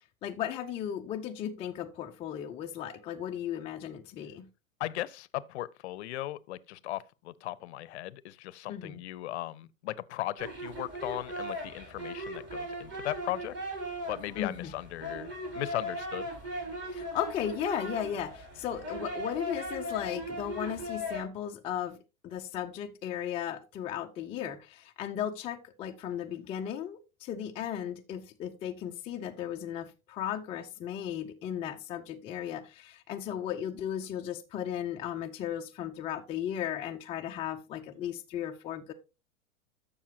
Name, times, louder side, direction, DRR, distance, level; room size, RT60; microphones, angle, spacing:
voice 1, 0.2-4.5 8.7-9.0 14.3-14.7 16.8-38.9, left 10 dB, 15° left, 0.4 m, -36 dB
voice 2, 4.8-13.5 14.1-16.3, left 15 dB, 55° left, 0.6 m, -37 dB
sound 1, 10.4-21.2, equal, 25° right, 5.0 m, -38 dB
12.5 x 6.9 x 2.8 m
figure-of-eight pair, 100°, 41 cm